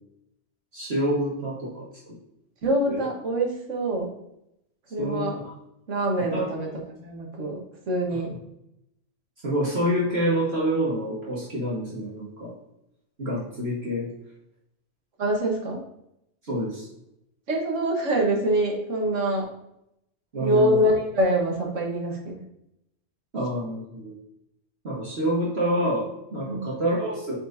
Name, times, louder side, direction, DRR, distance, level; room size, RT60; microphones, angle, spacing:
voice 1, 0.7-1.8 2.9-3.0 5.0-5.5 6.3-6.4 8.1-8.2 9.4-12.5 13.2-14.1 16.5-16.9 20.3-20.8 23.3-24.1 24.8-27.4, right 1 dB, 55° right, -6 dB, 1.8 m, -27 dB
voice 2, 2.6-4.1 4.9-5.4 5.9-8.3 15.2-15.8 17.5-19.5 20.4-22.4 26.4-26.7, right 1 dB, 75° right, 0 dB, 1.6 m, -25 dB
8.9 x 4.5 x 2.7 m, 0.80 s
omnidirectional pair, 1.3 m